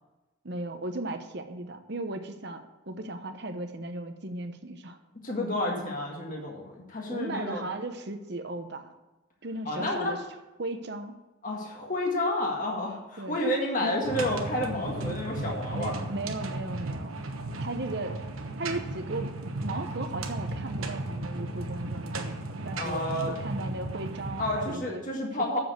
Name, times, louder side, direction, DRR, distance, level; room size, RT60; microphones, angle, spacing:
voice 1, 0.4-5.0 7.1-8.9 9.4-10.2 10.6-11.2 13.2-13.4 13.8-13.9 15.7-17.2 17.6-18.2 18.6-25.6, right 2 dB, 55° right, 7 dB, 1.0 m, -36 dB
voice 2, 5.2-7.7 9.7-10.2 11.4-16.0 22.8-23.4 24.4-25.6, left 1 dB, 40° left, -1 dB, 1.8 m, -30 dB
sound 1, 14.0-24.8, right 2 dB, 85° right, 1.1 m, -35 dB
7.7 x 7.1 x 7.8 m, 1.1 s
head